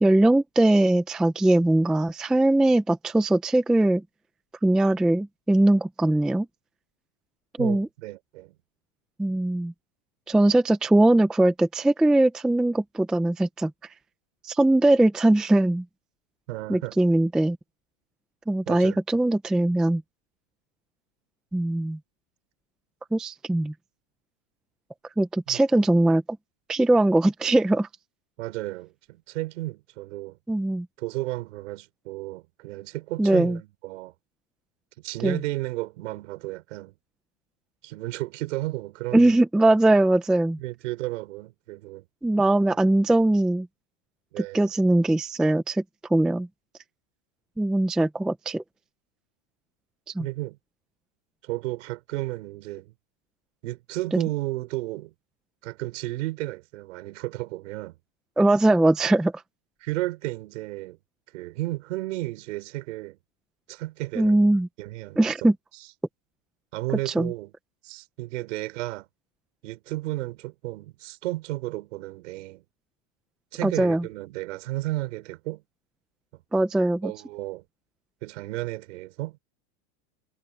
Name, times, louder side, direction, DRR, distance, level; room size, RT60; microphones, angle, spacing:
voice 1, 0.0-4.0 4.6-6.5 7.6-7.9 9.2-9.7 10.3-13.7 14.4-15.8 16.7-17.6 18.5-20.0 21.5-22.0 23.1-23.7 25.2-26.2 26.7-27.9 30.5-30.9 33.2-33.6 35.2-35.4 39.1-40.6 42.2-43.7 44.4-45.8 46.1-46.5 47.6-48.6 50.2-50.3 54.1-54.2 58.4-59.3 64.2-64.7 65.2-65.5 67.1-67.3 73.6-74.0 76.5-77.1, right 1 dB, ahead, 0.4 m, -21 dB
voice 2, 7.6-8.5 16.5-17.0 18.7-19.0 25.5-25.6 28.4-30.4 31.0-34.1 35.0-36.9 37.8-39.3 40.6-42.0 44.3-44.7 50.2-50.6 51.4-52.9 53.6-55.1 55.6-58.0 59.8-61.0 61.3-63.2 63.7-64.5 64.8-65.5 66.7-67.5 67.8-69.1 69.6-72.6 73.5-75.6 77.0-77.6 78.2-79.4, right 19 dB, 65° right, 5.0 m, -33 dB
supercardioid pair, 155°, 39 cm